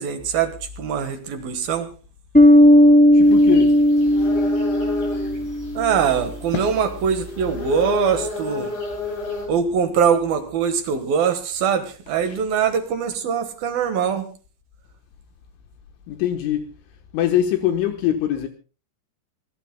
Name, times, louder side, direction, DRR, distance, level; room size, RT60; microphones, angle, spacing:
voice 1, 0.0-1.9 5.7-8.7 9.5-14.3, right 7 dB, 65° right, 2.5 m, -22 dB
Bass guitar, 2.3-5.8, left 1 dB, 5° left, 1.0 m, -14 dB
voice 2, 3.1-3.7 6.5-6.7 12.3-12.4 16.1-16.7 17.1-18.5, left 11 dB, 75° left, 3.4 m, -23 dB
sound 1, 3.2-9.5, left 3 dB, 40° left, 9.2 m, -32 dB
26.5 x 18.5 x 2.2 m
omnidirectional pair, 5.8 m